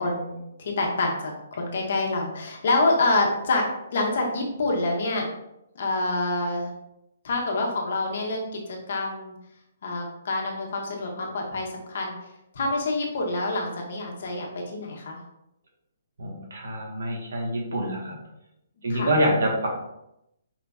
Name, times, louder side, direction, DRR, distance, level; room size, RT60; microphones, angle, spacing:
voice 1, 0.0-5.3 5.7-6.7 7.2-8.6 8.9-9.3 9.8-12.2 12.5-15.2 18.9-19.1, left 2 dB, 45° left, 0 dB, 1.0 m, -27 dB
voice 2, 16.2-18.2 18.8-19.7, right 1 dB, 65° right, -1 dB, 1.6 m, -26 dB
5.0 x 2.8 x 3.5 m, 0.84 s
hypercardioid pair, 180°, 0 cm